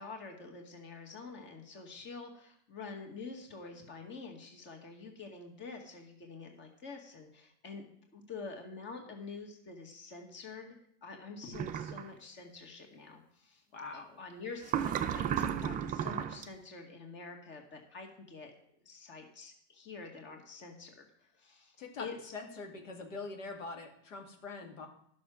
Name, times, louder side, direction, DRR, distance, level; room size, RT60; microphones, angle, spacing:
voice 1, 0.0-10.7 11.0-13.6 13.9-18.5 18.9-21.1 21.4-22.3 24.6-24.8, left 4 dB, 30° left, 3 dB, 2.2 m, -47 dB
sound 1, 11.5-12.0 14.6-16.4, right 9 dB, 20° right, 0.5 m, -33 dB
voice 2, 13.7-14.2 21.8-22.1 22.3-24.9, left 3 dB, 85° left, 2 dB, 2.5 m, -43 dB
11.0 x 6.5 x 6.3 m, 0.70 s
supercardioid pair, 130°, 37 cm